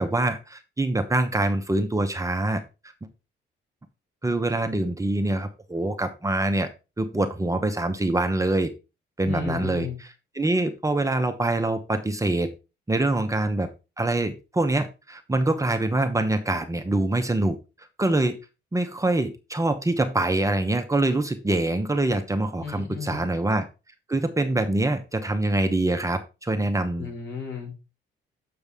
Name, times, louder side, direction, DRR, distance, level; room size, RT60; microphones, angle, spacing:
voice 1, 0.0-2.6 4.2-6.7 7.0-8.7 9.2-10.1 10.3-12.5 12.9-13.7 14.0-17.6 18.0-18.4 18.7-23.6 24.1-27.1, right 2 dB, 15° right, 7 dB, 0.9 m, -24 dB
voice 2, 9.2-10.0 22.6-23.2 27.0-27.8, left 6 dB, 70° left, -2 dB, 4.7 m, -34 dB
6.7 x 6.7 x 3.6 m, 0.29 s
cardioid pair, 90°, 20 cm